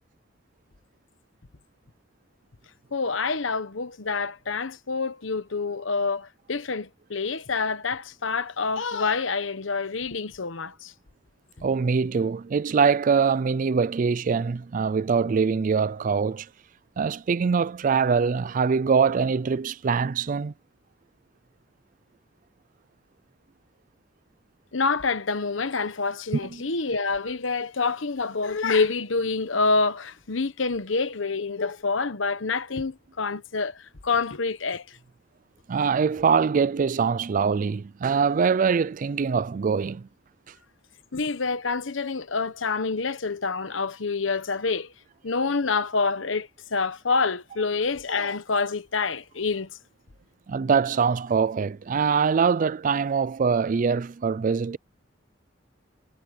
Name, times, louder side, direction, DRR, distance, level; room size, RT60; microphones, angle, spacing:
voice 1, 2.9-10.9 24.7-33.8 34.0-34.8 41.1-44.9 45.2-49.7, left 4 dB, 85° left, 1.1 m, -27 dB
voice 2, 11.6-16.5 17.0-20.5 26.3-26.6 35.7-40.1 50.5-54.8, right 5 dB, 45° right, 0.4 m, -23 dB
head